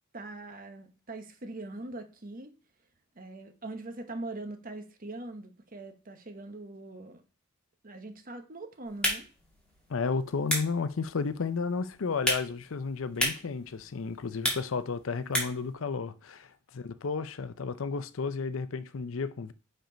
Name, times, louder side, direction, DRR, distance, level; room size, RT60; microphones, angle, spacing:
voice 1, 0.1-2.5 3.2-7.2 7.8-9.2, right 2 dB, 45° right, 1.0 m, -42 dB
sound 1, 8.8-15.7, equal, 5° left, 2.1 m, -35 dB
voice 2, 9.9-19.5, left 4 dB, 75° left, 0.6 m, -33 dB
5.2 x 4.4 x 5.1 m
head